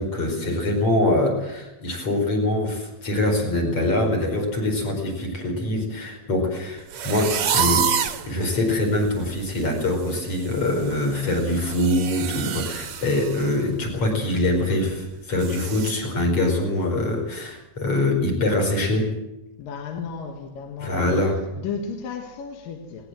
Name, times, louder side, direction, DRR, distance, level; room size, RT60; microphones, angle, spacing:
voice 1, 0.0-7.9 8.3-19.1 20.8-21.4, left 1 dB, 40° left, 5.8 m, -24 dB
sound 1, 6.9-8.3 8.8-8.9 9.3-9.6 9.8-13.5 13.9-14.0 14.5-14.6 15.4-15.9, right 8 dB, 55° right, 1.8 m, -28 dB
voice 2, 19.6-21.3 21.6-23.1, left 5 dB, 75° left, 3.3 m, -34 dB
20.0 x 19.5 x 7.7 m
omnidirectional pair, 4.1 m